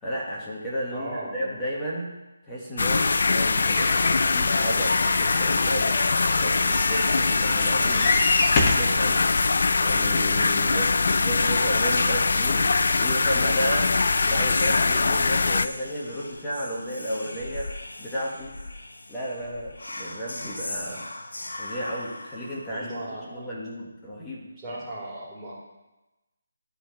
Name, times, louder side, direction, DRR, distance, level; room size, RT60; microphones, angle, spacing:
voice 1, 0.0-2.1 2.4-3.9 4.3-6.0 6.4-8.1 8.5-9.2 9.8-12.7 12.9-13.9 14.2-17.7 18.0-18.5 19.1-21.1 21.6-22.8 23.3-24.5, equal, 10° left, -7 dB, 1.6 m, -32 dB
voice 2, 0.9-1.6 22.7-23.5 24.6-25.6, right 1 dB, 15° right, -8 dB, 3.0 m, -37 dB
sound 1, 2.8-15.7, left 4 dB, 60° left, 0.3 m, -22 dB
sound 2, 3.6-8.9 9.6-9.7 10.0-10.1, left 3 dB, 25° left, 0.9 m, -28 dB
Whispering, 6.0-23.1, left 2 dB, 85° left, 1.0 m, -38 dB
13.0 x 4.5 x 4.6 m, 1.0 s
figure-of-eight pair, 165°, 0 cm